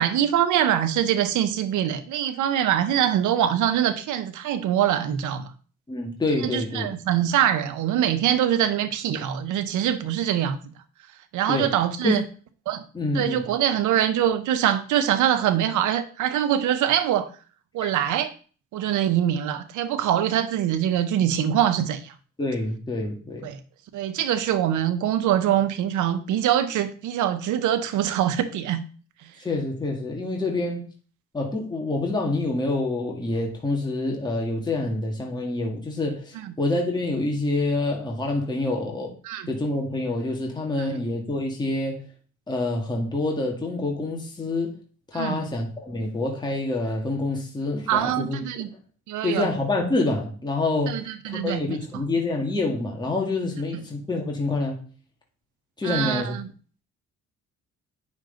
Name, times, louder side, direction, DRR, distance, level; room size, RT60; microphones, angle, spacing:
voice 1, 0.0-5.5 6.4-10.6 11.3-12.2 12.7-12.8 13.1-17.3 17.7-18.3 18.7-22.1 23.4-23.6 23.9-28.8 36.3-36.5 39.2-39.5 40.9-41.0 45.1-45.5 47.9-48.7 49.1-49.5 50.9-52.0 53.7-53.8 55.8-56.5, right 10 dB, 85° right, 1.1 m, -24 dB
voice 2, 5.9-6.9 11.5-11.7 12.0-12.2 12.9-13.5 22.4-23.5 29.4-30.9 31.3-39.1 39.5-42.0 42.5-44.7 45.1-48.4 49.2-51.0 51.3-54.8 55.8-56.3, left 2 dB, 15° left, 1.9 m, -27 dB
9.2 x 6.3 x 3.9 m
cardioid pair, 125°, 29 cm